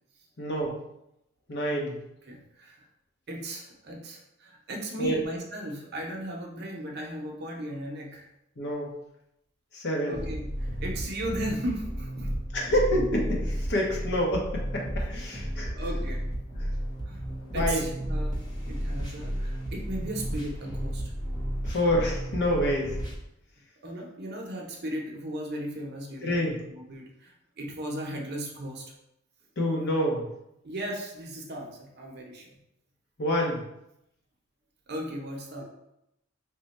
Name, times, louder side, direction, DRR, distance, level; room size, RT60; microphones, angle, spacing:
voice 1, 0.4-0.8 1.5-2.0 5.0-5.2 8.6-8.9 9.7-10.2 12.5-15.7 17.5-17.9 21.6-22.9 26.2-26.6 29.6-30.3 33.2-33.6, equal, 55° left, -1 dB, 0.8 m, -27 dB
voice 2, 2.3-2.9 3.3-8.3 10.1-12.3 15.7-16.2 17.0-17.2 17.5-21.0 23.8-28.8 30.6-32.5 34.9-35.6, right 1 dB, 50° right, 0 dB, 0.6 m, -36 dB
sound 1, 10.1-23.1, equal, 20° left, 0.7 m, -33 dB
3.4 x 2.1 x 4.0 m, 0.83 s
head